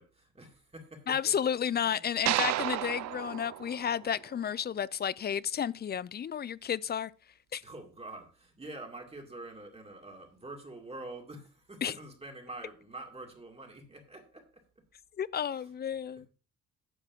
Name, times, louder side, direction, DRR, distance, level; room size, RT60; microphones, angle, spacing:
voice 1, 0.0-1.3 1.7-2.4 7.6-14.6, right 2 dB, 20° right, 2.3 m, -46 dB
voice 2, 1.1-7.1 7.5-7.6 11.8-11.9 15.2-16.3, left 8 dB, 35° left, 0.4 m, -32 dB
sound 1, 2.3-4.6, right 14 dB, 60° right, 0.5 m, -33 dB
9.9 x 3.8 x 7.3 m
cardioid pair, 90°, 30 cm